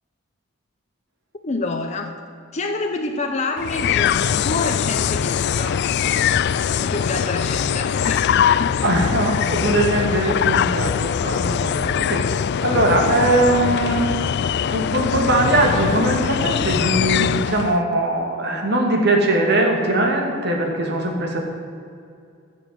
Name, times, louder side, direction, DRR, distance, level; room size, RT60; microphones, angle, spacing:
voice 1, 1.4-2.2 2.5-5.9 6.8-8.8, left 3 dB, 35° left, 3 dB, 0.8 m, -27 dB
sound 1, 3.6-17.8, left 8 dB, 55° left, 0.3 m, -22 dB
voice 2, 8.8-12.3 12.6-14.1 14.7-21.4, right 1 dB, 55° right, 1 dB, 2.5 m, -20 dB
15.5 x 7.1 x 7.8 m, 2.4 s
head